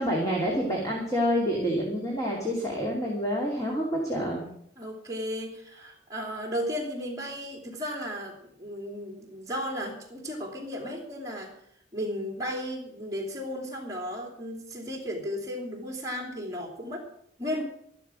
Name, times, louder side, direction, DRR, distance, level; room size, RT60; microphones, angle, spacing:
voice 1, 0.0-4.5, equal, 20° left, -2 dB, 2.8 m, -28 dB
voice 2, 4.8-11.5 11.9-17.1 17.4-17.6, equal, 20° right, 0 dB, 3.0 m, -34 dB
13.5 x 12.0 x 6.3 m, 0.69 s
head